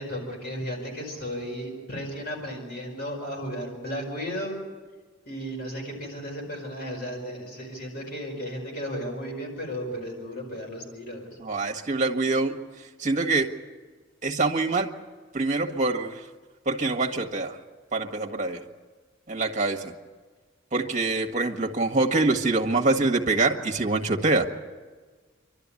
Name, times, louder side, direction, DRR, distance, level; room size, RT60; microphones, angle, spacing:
voice 1, 0.0-4.6 5.2-11.4, equal, 55° left, 0 dB, 5.0 m, -34 dB
voice 2, 11.4-12.6 13.0-13.5 14.2-14.9 15.3-16.2 16.6-17.6 17.9-18.6 19.3-19.9 20.7-24.5, right 3 dB, 40° right, 4 dB, 1.7 m, -25 dB
28.0 x 12.5 x 9.7 m, 1.4 s
head